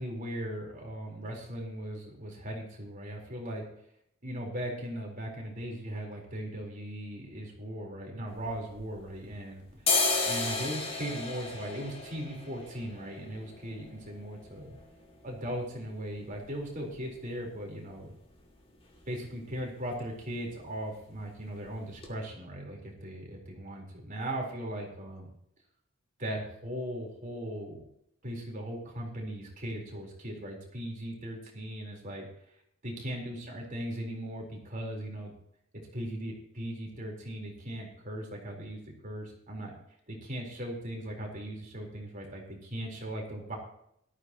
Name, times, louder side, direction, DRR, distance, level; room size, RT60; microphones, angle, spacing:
voice 1, 0.0-3.6 4.2-9.6 10.2-14.8 15.2-18.1 19.1-25.3 26.2-27.8 28.2-32.3 32.8-35.3 35.7-39.7 40.1-43.5, equal, 40° right, -1 dB, 4.3 m, -38 dB
sound 1, 8.3-9.3 9.7-17.4 17.7-17.8 18.1-18.6 18.9-19.2 19.4-19.7 19.9-20.7 21.0-21.2 21.6-21.7 22.0-22.1, left 3 dB, 25° left, 2.5 m, -34 dB
18.0 x 14.0 x 3.0 m, 0.71 s
head